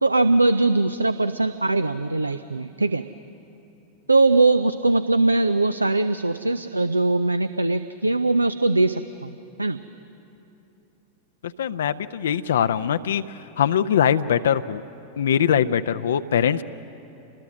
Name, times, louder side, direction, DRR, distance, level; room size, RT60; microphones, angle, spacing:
voice 1, 0.0-3.0 4.1-9.8, right 2 dB, 80° right, 13 dB, 0.5 m, -21 dB
voice 2, 11.6-14.8 15.2-16.6, left 8 dB, 65° left, 11 dB, 0.5 m, -22 dB
27.5 x 21.0 x 6.2 m, 3.0 s
figure-of-eight pair, 90°, 0 cm